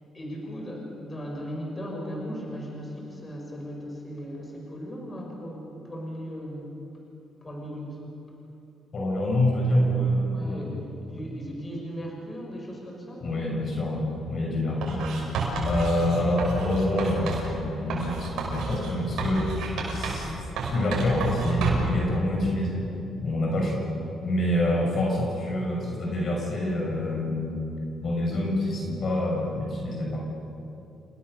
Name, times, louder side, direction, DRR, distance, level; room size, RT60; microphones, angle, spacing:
voice 1, 0.1-7.0 7.4-8.1 10.3-13.7 24.7-24.8, equal, 25° left, -1 dB, 6.5 m, -37 dB
voice 2, 8.9-10.8 13.2-15.1 15.6-20.3 20.7-22.9 23.2-23.8 24.2-27.6 28.0-30.2, left 1 dB, 50° left, -1 dB, 6.6 m, -26 dB
Writing, 14.8-17.5 17.9-20.3 20.6-22.0, right 3 dB, 80° right, 6.4 m, -30 dB
29.0 x 20.0 x 7.0 m, 2.8 s
cardioid pair, 90°, 0 cm